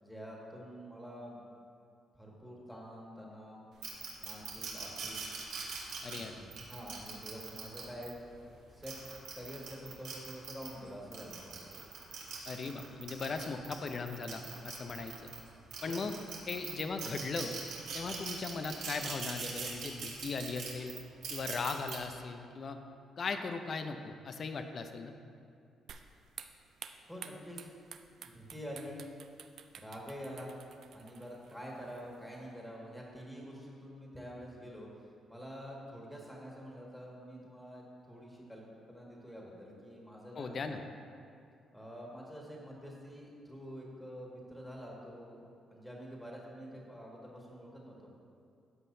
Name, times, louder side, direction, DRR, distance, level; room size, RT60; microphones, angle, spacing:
voice 1, 0.0-1.4 2.1-3.7 4.2-5.2 6.1-9.0 9.3-11.9 15.9-16.1 27.1-27.7 28.1-29.0 29.7-30.6 30.9-34.9 35.3-40.8 41.7-48.1, equal, 5° left, -3 dB, 1.8 m, -47 dB
sound 1, 3.8-8.1 8.7-10.7 11.1-15.4 15.7-22.0, right 5 dB, 80° right, 1.4 m, -42 dB
voice 2, 6.0-6.5 12.5-15.1 15.8-16.1 16.5-17.6 17.9-20.9 21.3-22.8 23.2-25.1 40.3-40.8, left 4 dB, 50° left, 7 dB, 0.5 m, -38 dB
sound 2, 25.9-32.5, right 7 dB, 65° right, 0.4 m, -52 dB
13.5 x 5.6 x 2.7 m, 2.4 s
cardioid pair, 90°, 0 cm